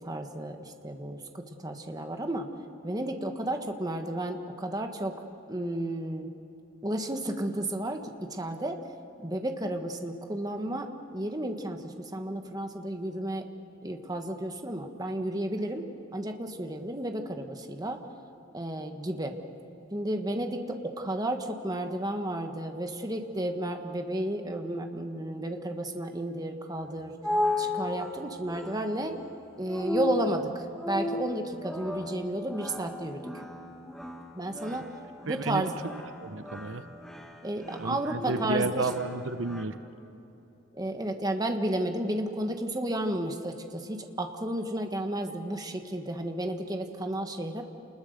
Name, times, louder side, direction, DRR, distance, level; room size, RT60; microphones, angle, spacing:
voice 1, 0.0-2.5 2.8-5.1 5.5-6.3 6.8-8.8 9.2-13.4 13.8-15.9 16.1-18.0 18.5-19.4 19.9-27.1 27.6-29.2 29.6-33.3 34.3-34.9 35.2-35.7 37.4-38.9 40.7-47.6, right 1 dB, 20° right, 5 dB, 1.5 m, -32 dB
sound 1, 26.8-39.6, left 2 dB, ahead, 1.6 m, -36 dB
voice 2, 35.3-35.6 36.2-36.9 37.8-39.8, right 3 dB, 80° right, 10 dB, 0.9 m, -32 dB
29.0 x 21.0 x 6.7 m, 3.0 s
head